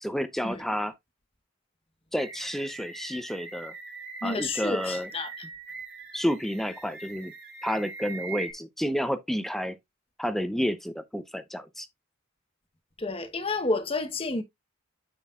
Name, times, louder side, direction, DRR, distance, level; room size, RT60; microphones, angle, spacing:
voice 1, 0.0-0.9 2.1-3.7 4.2-5.1 6.1-7.3 7.6-9.8 10.2-11.9, equal, ahead, 0.5 m, -30 dB
sound 1, 2.2-8.5, right 4 dB, 55° right, 3.2 m, -42 dB
voice 2, 4.2-5.3 13.0-14.4, left 3 dB, 25° left, 1.0 m, -30 dB
9.1 x 6.1 x 2.4 m
head